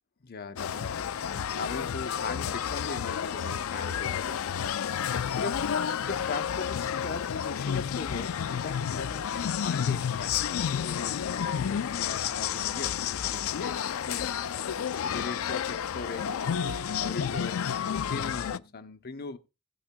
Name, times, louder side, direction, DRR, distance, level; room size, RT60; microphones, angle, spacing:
voice 1, 0.2-4.5 5.4-5.8 6.1-10.4 10.7-13.0 13.3-14.3 15.0-16.6 17.0-19.4, left 4 dB, 45° left, 0.8 m, -39 dB
sound 1, 0.6-18.6, left 8 dB, 70° left, 0.4 m, -31 dB
17.0 x 8.6 x 2.2 m
head